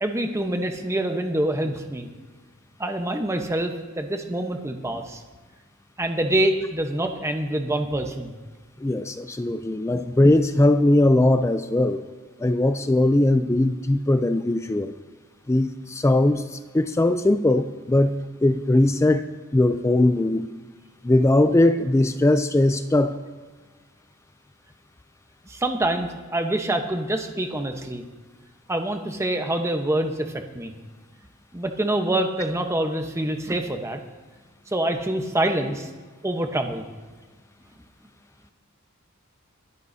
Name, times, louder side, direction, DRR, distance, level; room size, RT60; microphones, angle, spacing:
voice 1, 0.0-2.1 2.8-5.2 6.0-8.3 9.9-10.1 25.5-28.0 28.7-30.7 31.5-34.0 34.7-35.9 36.2-36.8, right 1 dB, 15° right, 5 dB, 1.0 m, -26 dB
voice 2, 8.8-12.0 12.4-14.9 15.5-19.2 19.5-20.5 21.0-23.1, left 1 dB, 15° left, 9 dB, 0.4 m, -20 dB
23.5 x 11.0 x 2.7 m, 1.4 s
head